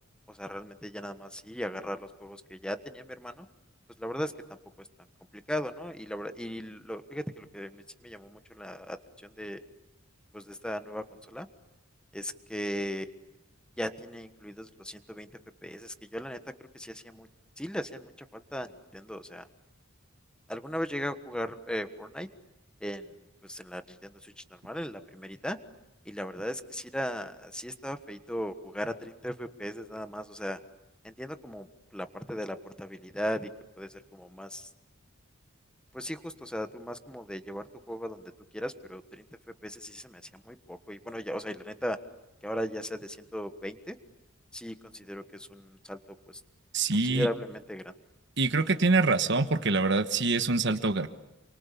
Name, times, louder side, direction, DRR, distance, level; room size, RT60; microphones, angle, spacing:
voice 1, 0.3-3.5 4.0-4.9 5.3-9.6 10.3-11.5 12.1-13.1 13.8-15.3 15.6-16.4 16.7-17.3 17.6-19.5 20.5-22.3 22.8-23.1 23.4-25.6 26.0-30.6 31.0-31.7 31.9-33.5 33.8-34.7 35.9-39.3 39.6-42.0 42.4-43.9 44.5-46.0 46.3-46.4 47.0-47.9, equal, 5° left, 10 dB, 1.3 m, -37 dB
voice 2, 46.7-47.3 48.4-51.1, right 3 dB, 55° right, 10 dB, 1.3 m, -25 dB
29.0 x 24.5 x 8.5 m, 0.97 s
head